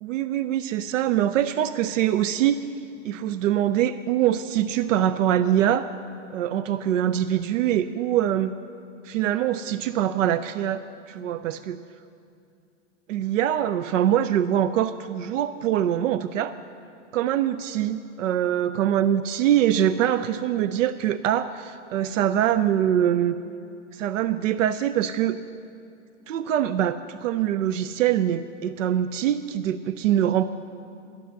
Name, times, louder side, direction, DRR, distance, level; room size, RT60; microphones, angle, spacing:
voice 1, 0.0-2.6 3.0-5.9 6.3-8.5 9.1-10.8 11.1-11.8 13.1-16.5 17.1-23.4 23.9-25.4 26.3-30.4, right 11 dB, 80° right, 13 dB, 0.5 m, -23 dB
12.0 x 10.5 x 6.5 m, 2.5 s
supercardioid pair, 170°, 38 cm